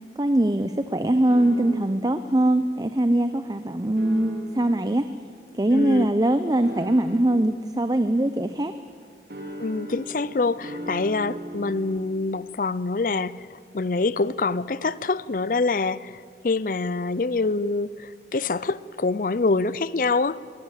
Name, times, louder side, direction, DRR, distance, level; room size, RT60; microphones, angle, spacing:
voice 1, 0.0-5.1 5.5-8.7, right 1 dB, 20° right, 0.6 m, -22 dB
sound 1, 1.3-2.1 4.0-4.8 6.6-7.5 9.3-12.0, equal, 60° right, 4.0 m, -38 dB
voice 2, 5.7-6.1 9.6-20.4, left 3 dB, 50° left, 0.5 m, -25 dB
22.5 x 18.5 x 8.2 m
head